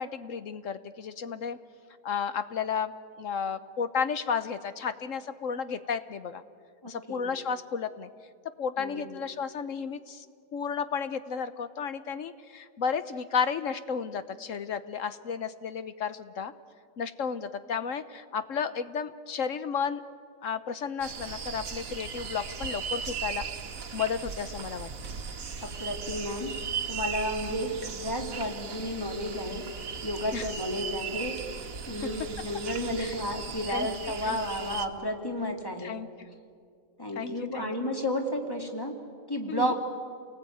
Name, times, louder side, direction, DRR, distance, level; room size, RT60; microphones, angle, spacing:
voice 1, 0.0-1.6 2.0-2.9 3.2-6.4 6.9-8.1 8.6-10.3 10.5-16.5 17.0-20.0 20.4-23.5 23.9-24.9 30.3-30.5 32.0-32.1 33.0-33.1 33.7-33.9 34.3-34.4 35.8-36.3 37.2-37.7 39.5-39.7, left 6 dB, 65° left, 12 dB, 1.2 m, -33 dB
voice 2, 6.8-7.3 8.8-9.1 25.6-26.5 26.8-29.6 30.0-35.9 37.0-38.9 39.3-39.8, equal, 15° left, 3 dB, 2.6 m, -32 dB
sound 1, 21.0-34.9, right 6 dB, 75° right, 1.8 m, -37 dB
29.0 x 19.0 x 9.3 m, 2.3 s
omnidirectional pair, 1.5 m